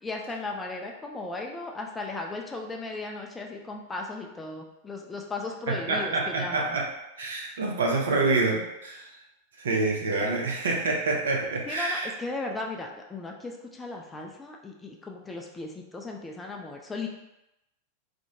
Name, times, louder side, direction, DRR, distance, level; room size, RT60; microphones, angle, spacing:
voice 1, 0.0-6.8 11.7-17.1, left 3 dB, 15° left, 1 dB, 0.3 m, -36 dB
voice 2, 5.7-6.8 7.2-9.1 9.6-12.1, right 3 dB, 65° right, 0 dB, 0.5 m, -27 dB
2.4 x 2.1 x 3.0 m, 0.91 s
figure-of-eight pair, 90°, 0 cm